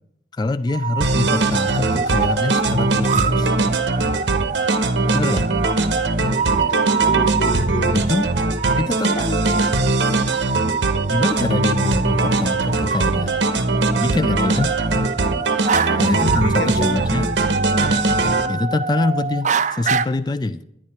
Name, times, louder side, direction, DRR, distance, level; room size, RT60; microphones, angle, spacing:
voice 1, 0.4-3.6 5.1-5.5 7.9-8.3 8.8-9.4 11.1-13.4 14.0-14.7 16.0-17.4 18.5-20.6, left 2 dB, 25° left, 12 dB, 0.3 m, -24 dB
sound 1, 0.7-20.1, right 5 dB, 40° right, 0.4 m, -26 dB
sound 2, 1.0-18.5, right 2 dB, 90° right, 1.1 m, -20 dB
voice 2, 6.6-8.1 15.9-17.0, right 1 dB, 80° left, 9 dB, 0.9 m, -28 dB
12.0 x 10.5 x 4.3 m, 0.78 s
head